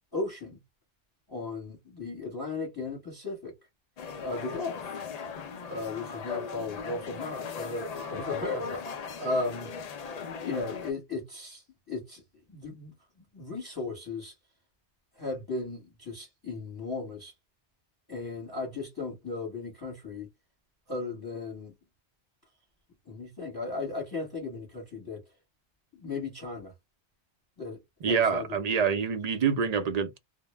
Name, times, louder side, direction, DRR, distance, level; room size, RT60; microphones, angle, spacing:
voice 1, 0.1-0.6 1.3-3.5 4.2-5.0 5.7-8.8 9.2-9.7 10.4-12.2 12.5-12.9 13.3-14.3 15.2-17.3 18.1-20.3 20.9-21.7 23.1-25.2 25.9-26.7 27.6-28.6 28.9-29.0, left 3 dB, 20° left, 0.9 m, -36 dB
sound 1, 4.0-10.9, left 6 dB, 65° left, 0.4 m, -38 dB
voice 2, 28.0-30.2, right 6 dB, 55° right, 0.4 m, -26 dB
2.1 x 2.0 x 3.1 m
omnidirectional pair, 1.2 m